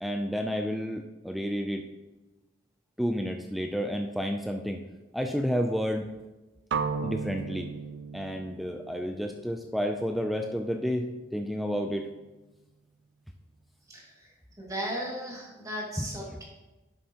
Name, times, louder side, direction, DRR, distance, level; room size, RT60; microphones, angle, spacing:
voice 1, 0.0-1.8 3.0-4.8 5.1-6.1 7.0-7.7 8.1-12.1 16.0-16.1, equal, ahead, 4 dB, 0.3 m, -30 dB
sound 1, 6.7-10.7, right 5 dB, 60° right, 0.5 m, -36 dB
voice 2, 13.9-14.3 14.6-16.4, equal, 15° right, -3 dB, 2.1 m, -36 dB
11.0 x 7.1 x 2.9 m, 1.1 s
head